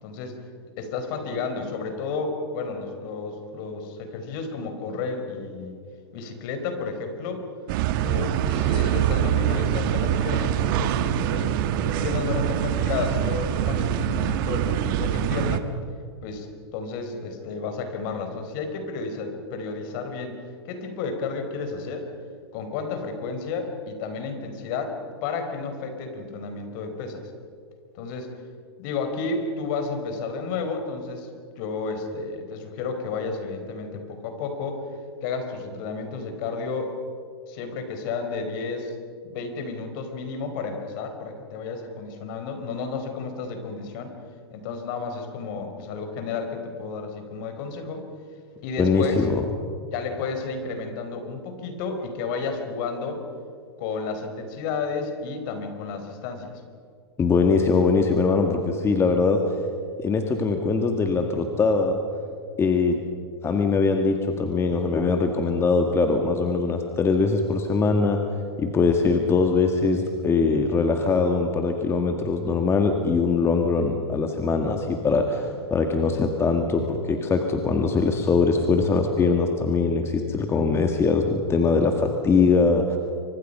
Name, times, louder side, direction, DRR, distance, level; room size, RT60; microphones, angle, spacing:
voice 1, 0.0-0.3 0.8-5.8 6.1-7.5 8.0-11.0 11.3-11.5 11.8-15.7 16.2-16.5 16.7-20.4 20.7-22.1 22.5-27.3 27.9-28.3 28.8-31.3 31.6-34.8 35.2-36.9 37.5-39.0 39.2-44.1 44.5-48.1 48.6-49.2 49.9-53.2 53.8-56.6, left 4 dB, 50° left, 6 dB, 4.7 m, -32 dB
sound 1, 7.7-15.6, right 10 dB, 50° right, 1.6 m, -24 dB
voice 2, 48.8-49.5 57.2-59.4 60.0-62.0 62.6-63.0 63.4-68.2 68.6-83.0, left 4 dB, 20° left, 4 dB, 1.9 m, -22 dB
27.5 x 25.0 x 5.6 m, 2.3 s
hypercardioid pair, 125°, 14 cm